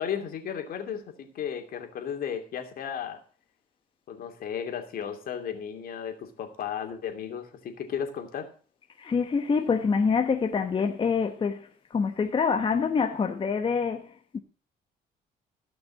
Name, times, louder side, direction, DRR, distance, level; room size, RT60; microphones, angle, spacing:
voice 1, 0.0-3.2 4.1-8.5, left 8 dB, 60° left, 2.8 m, -34 dB
voice 2, 9.0-14.4, left 5 dB, 30° left, 1.1 m, -26 dB
15.5 x 6.1 x 7.6 m
cardioid pair, 110°, 17 cm